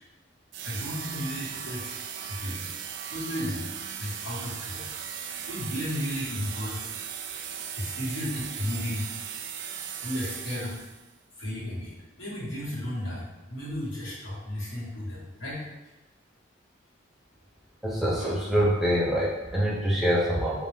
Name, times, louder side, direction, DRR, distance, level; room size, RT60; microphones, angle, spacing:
sound 1, 0.5-11.1, right 8 dB, 60° right, 0.3 m, -37 dB
voice 1, 0.6-2.8 3.1-3.6 4.0-4.9 5.5-6.8 7.7-9.1 10.0-10.8 11.4-15.6, left 1 dB, 70° left, -7 dB, 1.4 m, -34 dB
voice 2, 17.8-20.6, equal, ahead, -6 dB, 0.5 m, -25 dB
3.7 x 2.5 x 3.5 m, 1.0 s
head